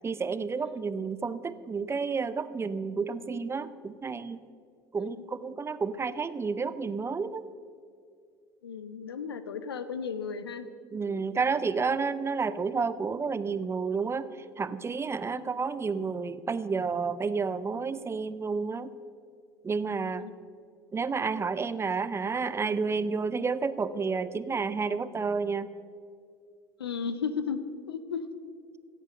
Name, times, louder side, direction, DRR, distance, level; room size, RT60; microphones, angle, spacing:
voice 1, 0.0-4.4 4.9-7.4 10.9-18.9 19.6-20.2 20.9-25.7, right 5 dB, 20° right, 15 dB, 0.6 m, -30 dB
voice 2, 8.6-10.7 20.2-20.3 26.8-27.6 27.9-28.3, left 6 dB, 85° left, 13 dB, 0.7 m, -34 dB
15.5 x 8.5 x 5.3 m, 2.3 s
hypercardioid pair, 70°, 12 cm